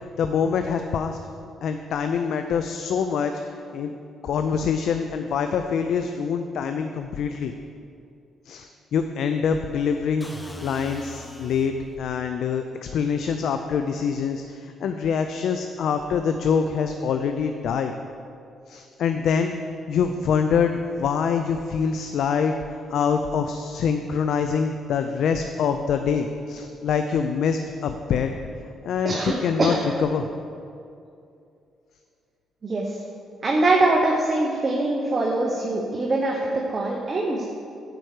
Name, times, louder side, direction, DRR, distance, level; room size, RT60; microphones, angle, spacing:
voice 1, 0.2-1.2 1.6-3.3 3.7-3.9 4.2-7.5 8.5-17.9 18.7-19.5 19.9-28.3 28.8-30.3, left 6 dB, 75° left, 7 dB, 0.4 m, -25 dB
sound 1, 10.2-12.1, equal, 15° left, 0.7 m, -41 dB
voice 2, 29.0-29.8 32.6-33.0 33.4-37.4, right 2 dB, 35° right, -1 dB, 0.9 m, -23 dB
9.7 x 4.5 x 6.5 m, 2.5 s
cardioid pair, 100°, 0 cm